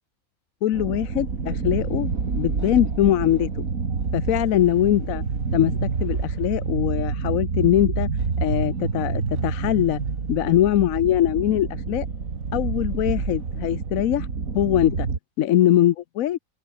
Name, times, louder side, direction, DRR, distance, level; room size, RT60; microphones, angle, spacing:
voice 1, 0.6-3.5 4.1-5.2 5.5-8.1 8.4-10.0 10.3-12.1 12.5-14.3 14.5-15.1 15.4-16.4, left 12 dB, 80° left, 1.1 m, -22 dB
sound 1, 0.7-15.2, right 5 dB, 75° right, 2.7 m, -28 dB
open air
omnidirectional pair, 1.4 m